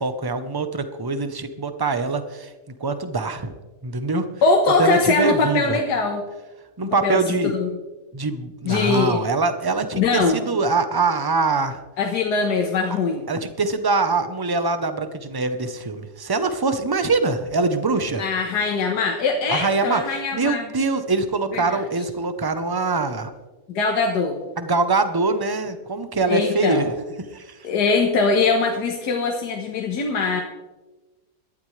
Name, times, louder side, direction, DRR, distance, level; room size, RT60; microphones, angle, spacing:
voice 1, 0.0-2.5 2.8-3.5 3.8-4.3 4.8-5.8 6.8-7.5 8.1-11.8 13.3-18.2 19.5-23.3 24.6-26.9 27.3-27.6, right 3 dB, 20° right, 9 dB, 0.6 m, -23 dB
voice 2, 4.4-6.2 6.8-7.8 8.6-9.3 9.9-10.4 12.0-13.2 18.2-20.7 21.5-21.8 23.7-24.4 26.2-26.9 27.6-30.4, left 4 dB, 80° left, 1 dB, 1.8 m, -22 dB
17.5 x 12.5 x 3.3 m, 1.2 s
omnidirectional pair, 1.7 m